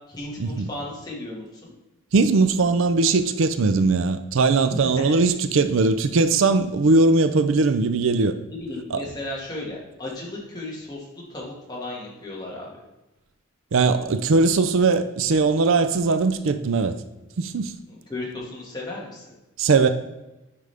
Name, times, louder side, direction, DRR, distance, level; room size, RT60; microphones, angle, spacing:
voice 1, 0.1-1.7 4.7-5.2 8.5-12.8 17.9-19.2, left 2 dB, 20° left, 1.9 m, -35 dB
voice 2, 2.1-8.3 8.9-9.0 13.7-16.9 17.4-17.7 19.6-19.9, right 3 dB, 65° right, 0.4 m, -20 dB
9.9 x 5.2 x 3.4 m
head